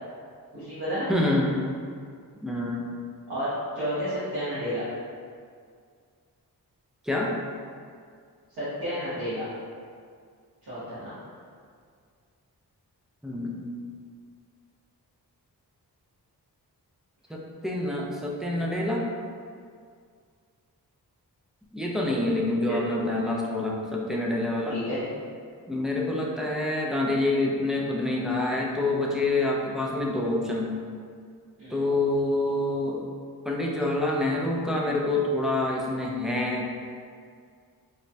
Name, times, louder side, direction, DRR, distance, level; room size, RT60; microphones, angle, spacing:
voice 1, 0.5-1.1 3.3-3.5 3.7-4.8 8.5-9.4 10.6-11.1 22.7-22.8 24.7-25.0 31.6-31.8, equal, 80° right, -13 dB, 1.0 m, -31 dB
voice 2, 1.1-1.5 2.4-2.9 7.0-7.3 13.2-13.8 17.3-19.0 21.7-24.8 25.7-30.7 31.7-33.0 33.5-36.7, left 2 dB, ahead, -3 dB, 0.3 m, -27 dB
3.0 x 2.1 x 2.6 m, 2.1 s
wide cardioid pair, 80°, 39 cm